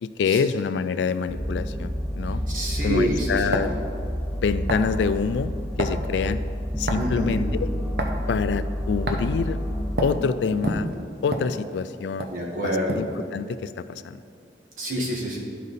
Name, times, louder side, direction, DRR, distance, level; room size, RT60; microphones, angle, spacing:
voice 1, 0.0-2.4 2.8-3.7 4.4-5.5 5.8-6.4 6.8-7.7 8.3-9.6 10.0-10.9 11.2-12.3 12.6-14.0, left 5 dB, 80° left, 13 dB, 0.3 m, -26 dB
sound 1, 1.3-10.1, equal, ahead, 0.5 m, -29 dB
voice 2, 2.5-3.6 6.9-7.4 12.3-13.0 14.8-15.4, equal, 50° right, -3 dB, 1.6 m, -27 dB
sound 2, 3.5-3.8 4.7-4.9 5.8-6.0 6.9-7.2 8.0-8.2 9.1-9.3 10.0-10.2 10.6-11.9 12.2-12.4 12.9-13.2, right 1 dB, 65° right, 0.8 m, -28 dB
11.5 x 5.1 x 4.1 m, 2.4 s
head